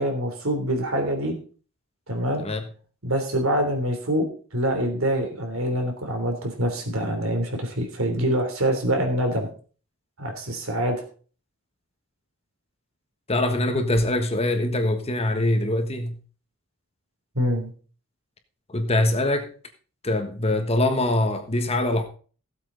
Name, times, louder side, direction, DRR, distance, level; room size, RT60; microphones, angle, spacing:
voice 1, 0.0-1.4 2.1-2.4 3.0-9.5 10.2-11.0 17.3-17.7, right 1 dB, 75° right, 3.3 m, -25 dB
voice 2, 13.3-16.2 18.7-19.5 20.0-22.1, left 1 dB, 30° left, 1.4 m, -23 dB
16.0 x 8.2 x 4.0 m
head